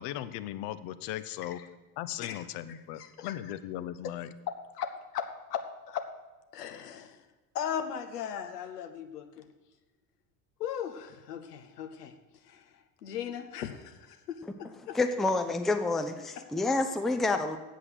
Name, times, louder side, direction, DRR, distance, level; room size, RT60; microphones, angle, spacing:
voice 1, 0.0-1.6 2.0-4.3, left 13 dB, 50° left, 14 dB, 0.7 m, -38 dB
voice 2, 2.2-3.4 4.0-4.1 4.5-6.1 6.5-7.3 7.5-9.5 10.6-15.0 16.4-16.5, left 8 dB, 70° left, 8 dB, 1.0 m, -38 dB
voice 3, 14.9-17.6, left 2 dB, ahead, 7 dB, 0.5 m, -28 dB
8.3 x 7.7 x 6.6 m, 1.2 s
figure-of-eight pair, 65°, 48 cm